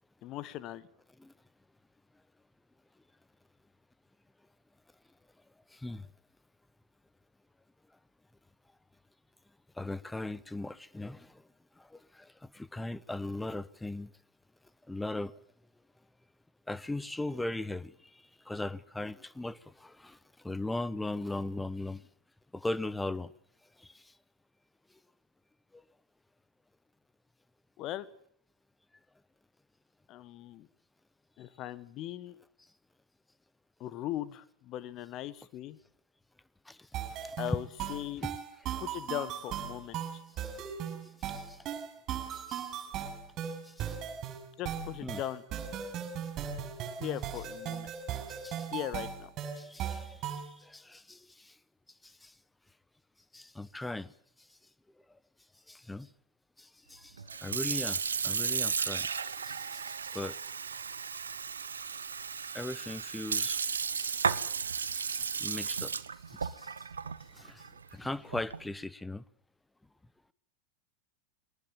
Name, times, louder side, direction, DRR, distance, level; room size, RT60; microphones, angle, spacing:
voice 1, 0.2-0.9 27.8-28.1 30.1-30.7 31.4-32.4 33.8-35.8 37.4-38.2 38.8-40.2 44.6-45.4 47.0-47.9 48.7-49.3, left 13 dB, 35° left, 1.5 m, -39 dB
voice 2, 5.7-6.1 9.8-11.5 11.8-14.1 14.9-15.4 16.7-22.0 22.5-23.3 23.8-24.1 25.7-25.8 36.7-36.9 37.2-37.3 38.2-38.3 40.4-40.5 40.9-41.6 42.3-42.7 43.6-44.0 45.0-45.2 48.3-48.7 49.6-51.6 52.0-52.3 53.3-54.1 54.4-54.5 55.7-56.1 56.6-60.4 62.5-64.2 64.9-65.9 66.3-66.8 67.3-69.2, left 2 dB, 5° left, 0.9 m, -39 dB
sound 1, 36.9-50.5, right 8 dB, 35° right, 6.4 m, -38 dB
Sink (filling or washing) / Fill (with liquid), 57.2-68.7, right 6 dB, 70° right, 1.1 m, -34 dB
23.0 x 19.0 x 7.5 m
figure-of-eight pair, 90°, 0 cm